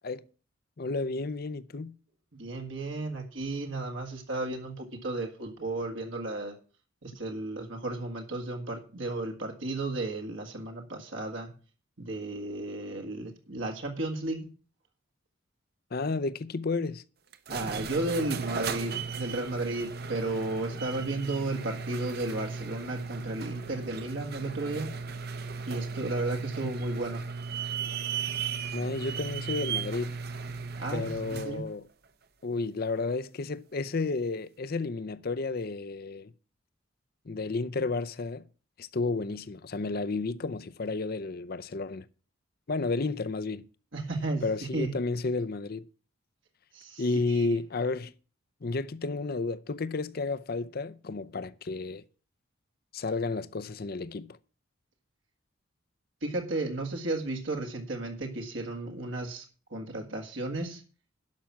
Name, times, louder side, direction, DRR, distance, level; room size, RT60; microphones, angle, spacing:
voice 1, 0.8-1.9 15.9-17.0 28.7-30.2 30.9-31.9 32.4-36.3 37.3-38.4 38.8-42.1 42.7-43.7 44.4-45.9 47.0-48.1 48.6-52.0 52.9-54.4, left 3 dB, 50° left, 0.6 m, -32 dB
voice 2, 2.4-6.6 7.0-11.5 12.0-14.5 17.5-24.9 25.7-27.2 30.8-31.6 43.9-44.4 44.7-44.9 46.7-47.0 47.3-47.5 56.2-59.4 59.7-60.8, right 2 dB, 70° right, 1.9 m, -34 dB
sound 1, 17.3-31.6, right 5 dB, 50° right, 0.8 m, -36 dB
11.5 x 5.9 x 7.5 m
head